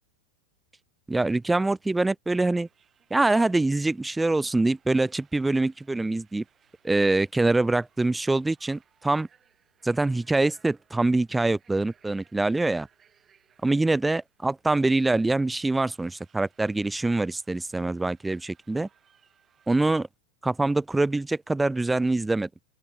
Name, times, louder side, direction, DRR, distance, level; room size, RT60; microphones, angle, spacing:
voice 1, 1.1-2.7 3.1-6.4 6.8-9.3 9.8-12.9 13.6-18.9 19.7-20.1 20.4-22.5, right 2 dB, 5° right, 0.5 m, -24 dB
sound 1, 2.6-20.0, right 8 dB, 20° right, 7.9 m, -65 dB
open air
figure-of-eight pair, 90°, 0 cm